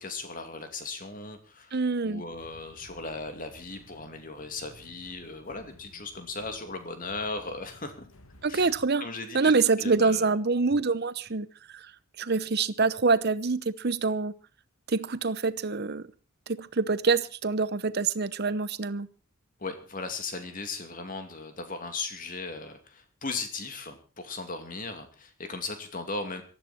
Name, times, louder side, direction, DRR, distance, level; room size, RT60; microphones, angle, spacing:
voice 1, 0.0-8.1 8.5-8.7 9.0-9.5 9.8-10.3 19.6-26.4, left 3 dB, 40° left, 7 dB, 2.7 m, -37 dB
voice 2, 1.7-2.2 8.4-9.0 9.3-11.5 11.7-11.9 12.2-14.3 14.9-16.1 16.5-19.1, right 4 dB, 50° right, 16 dB, 0.9 m, -26 dB
sound 1, 2.3-8.9, left 1 dB, 85° left, 2.3 m, -55 dB
19.0 x 14.0 x 4.4 m, 0.34 s
head